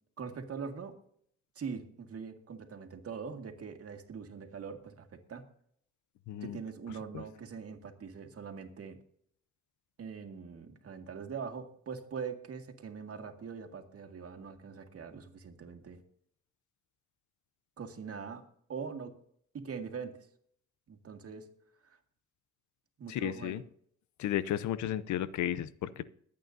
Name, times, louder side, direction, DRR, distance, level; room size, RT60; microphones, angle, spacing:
voice 1, 0.2-1.0 1.6-5.4 6.4-9.0 10.0-16.0 17.8-18.4 18.7-19.2 19.5-20.3 20.9-21.5 21.8-22.0 23.0-23.6, right 6 dB, 50° right, 5 dB, 1.9 m, -42 dB
voice 2, 6.3-6.6 7.1-7.2 23.1-23.6 24.2-26.0, left 11 dB, 70° left, 16 dB, 0.7 m, -33 dB
22.0 x 8.6 x 2.7 m, 0.66 s
cardioid pair, 90°, 30 cm